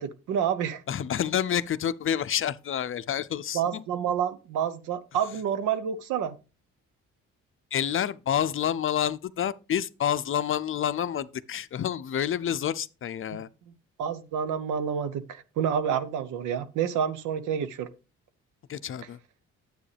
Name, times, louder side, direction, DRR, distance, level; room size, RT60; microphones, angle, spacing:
voice 1, 0.0-0.8 3.5-6.3 14.0-17.9, right 8 dB, 85° right, 0.9 m, -28 dB
voice 2, 0.9-3.8 7.7-13.5 18.7-19.2, left 9 dB, 45° left, 0.5 m, -28 dB
9.9 x 7.9 x 3.3 m
cardioid pair, 90°, 30 cm